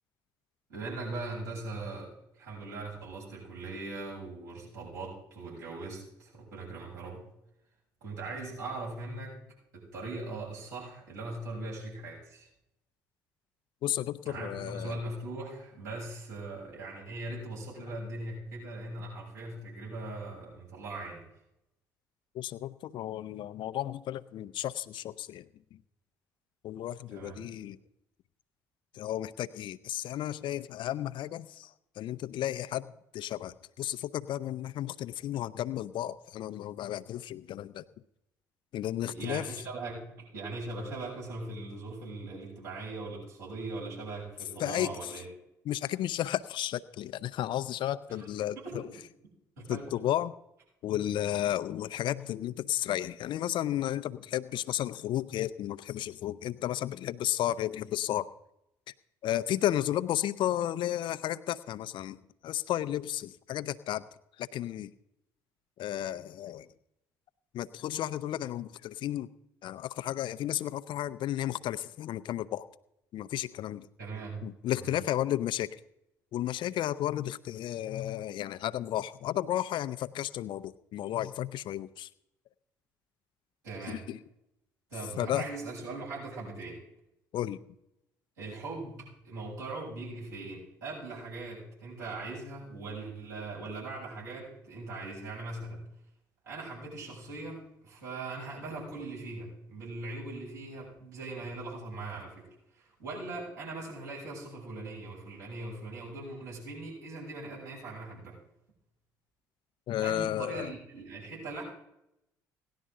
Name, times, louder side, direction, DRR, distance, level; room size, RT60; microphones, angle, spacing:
voice 1, 0.7-7.2 8.0-9.4 9.7-12.5 14.2-21.2 27.1-27.4 39.0-45.2 48.1-48.3 48.5-48.9 49.6-49.9 74.0-74.4 74.8-74.9 83.6-84.0 84.9-86.8 88.4-95.9 96.4-102.5 102.7-108.4 110.0-111.6, right 2 dB, 80° right, -7 dB, 6.6 m, -40 dB
voice 2, 13.8-15.0 22.3-25.8 26.6-27.8 28.9-37.8 38.7-39.6 44.6-45.1 45.7-48.9 49.7-50.3 50.8-58.3 59.2-64.0 64.4-64.9 65.8-66.7 67.5-69.3 69.6-72.7 73.1-73.9 74.4-75.8 76.3-82.1 83.9-84.2 85.2-85.5 87.3-87.6 109.9-110.7, left 12 dB, 55° left, 13 dB, 0.6 m, -33 dB
18.0 x 11.5 x 3.8 m, 0.82 s
figure-of-eight pair, 50°, 10 cm